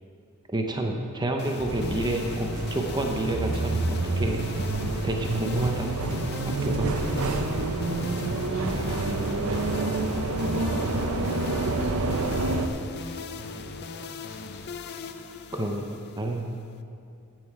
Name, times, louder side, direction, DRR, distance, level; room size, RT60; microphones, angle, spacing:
voice 1, 0.5-4.4 5.0-5.9 6.4-6.9 15.5-15.8 16.2-16.5, right 1 dB, 20° right, 2 dB, 0.7 m, -29 dB
sound 1, 1.4-16.8, left 4 dB, 50° left, 0.5 m, -38 dB
sound 2, 1.7-12.7, right 2 dB, 80° right, 0.7 m, -28 dB
Bowed string instrument, 6.7-10.9, equal, 5° left, 1.4 m, -40 dB
voice 2, 8.5-10.0 10.3-12.6 13.0-14.8, equal, 80° left, -4 dB, 2.5 m, -45 dB
14.0 x 7.5 x 4.7 m, 2.5 s
head